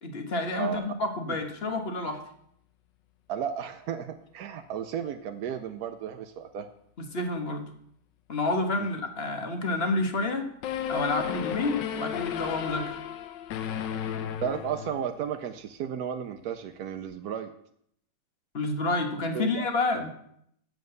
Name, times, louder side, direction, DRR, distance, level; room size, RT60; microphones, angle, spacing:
voice 1, 0.0-2.2 7.0-7.7 8.3-10.5 10.9-13.0 18.5-20.1, left 2 dB, 40° left, 5 dB, 1.4 m, -29 dB
voice 2, 3.3-6.7 8.8-8.9 14.4-17.5 19.3-19.7, right 8 dB, 65° right, 6 dB, 1.1 m, -34 dB
sound 1, 10.6-15.3, left 9 dB, 90° left, 1.4 m, -33 dB
7.7 x 7.5 x 8.0 m, 0.71 s
omnidirectional pair, 1.9 m